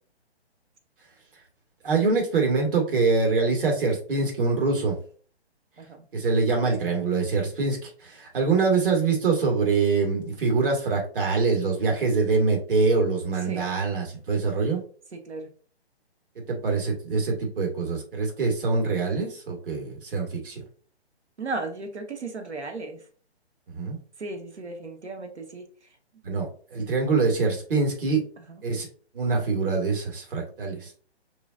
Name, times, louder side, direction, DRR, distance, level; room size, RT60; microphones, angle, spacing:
voice 1, 1.8-5.0 6.1-14.8 16.5-20.6 23.7-24.0 26.2-28.2 28.6-28.9 29.1-30.9, right 4 dB, 55° right, 0 dB, 2.0 m, -24 dB
voice 2, 15.1-15.5 21.4-23.0 24.2-25.7 28.4-28.6, right 3 dB, 85° right, 5 dB, 1.1 m, -35 dB
4.8 x 3.9 x 2.5 m, 0.43 s
figure-of-eight pair, 140°, 33 cm